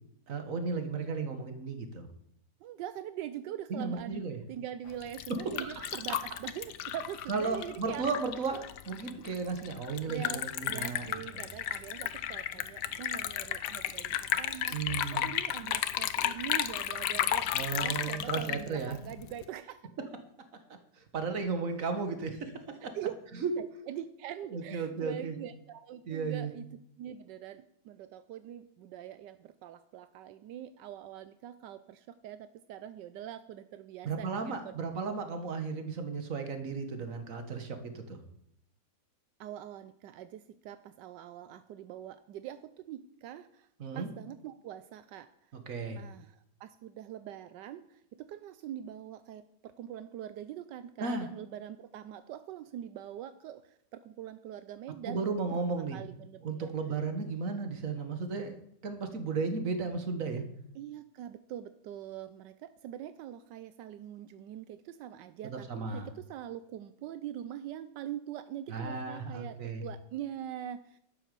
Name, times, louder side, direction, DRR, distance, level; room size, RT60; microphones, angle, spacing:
voice 1, 0.3-2.1 3.7-4.4 5.6-5.9 7.3-11.1 11.3-11.4 14.7-15.3 17.5-19.0 21.1-22.5 23.4-23.5 24.5-25.3 26.1-26.5 34.0-38.2 43.8-44.1 45.7-46.0 51.0-51.3 55.1-56.0 56.4-60.4 65.7-66.1 68.7-69.8, right 4 dB, 50° right, 7 dB, 1.9 m, -34 dB
voice 2, 2.6-8.2 10.1-17.5 17.8-19.9 22.8-23.2 23.6-26.7 27.0-34.7 39.4-43.7 43.9-45.3 45.9-55.2 55.6-56.7 60.7-71.0, right 11 dB, 85° right, 12 dB, 1.3 m, -43 dB
Liquid, 4.9-19.4, left 11 dB, 75° left, 1.3 m, -34 dB
11.5 x 9.1 x 6.8 m, 0.72 s
omnidirectional pair, 1.8 m